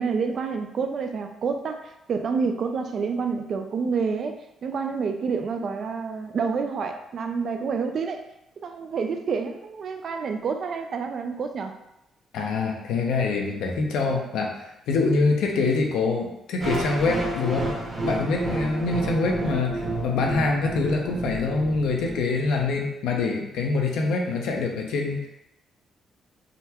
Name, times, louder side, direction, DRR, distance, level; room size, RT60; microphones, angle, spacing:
voice 1, 0.0-8.2 8.6-11.7, right 5 dB, 55° right, 6 dB, 0.3 m, -28 dB
voice 2, 12.3-17.7 18.0-25.3, left 3 dB, 85° left, 1 dB, 0.6 m, -25 dB
sound 1, 16.6-22.6, right 2 dB, 30° right, 0.9 m, -31 dB
3.7 x 2.2 x 2.8 m, 0.88 s
cardioid pair, 90°, 0 cm